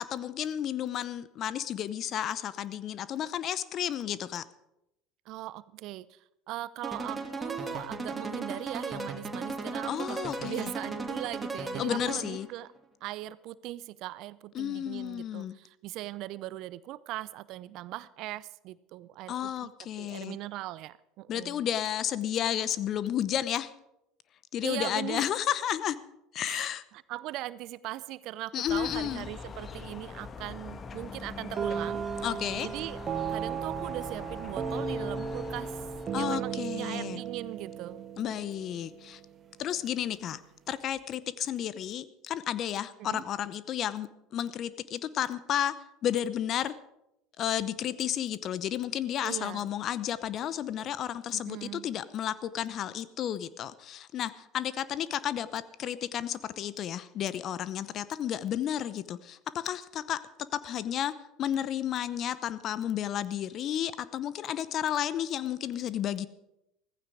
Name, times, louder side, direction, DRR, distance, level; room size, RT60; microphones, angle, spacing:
voice 1, 0.0-4.4 9.9-10.7 11.8-12.5 14.5-15.5 19.3-20.4 21.3-23.7 24.5-26.0 26.3-26.8 28.5-29.3 32.2-32.7 36.1-37.2 38.2-39.2 39.6-40.4 40.7-45.7 46.0-46.7 47.4-60.2 60.5-66.3, left 10 dB, 45° left, 16 dB, 0.8 m, -32 dB
voice 2, 5.3-12.7 13.0-19.7 20.0-21.7 24.6-25.3 26.4-32.2 32.5-33.0 33.3-38.0 43.0-43.2 49.2-49.7 51.3-51.9, right 15 dB, 60° right, 19 dB, 0.6 m, -40 dB
sound 1, 6.8-12.5, right 3 dB, 15° right, 2.9 m, -36 dB
sound 2, 28.7-36.7, left 4 dB, 30° left, 1.4 m, -43 dB
sound 3, 31.6-39.3, right 6 dB, 35° right, 1.7 m, -35 dB
15.0 x 15.0 x 4.9 m, 0.86 s
hypercardioid pair, 75°, 0 cm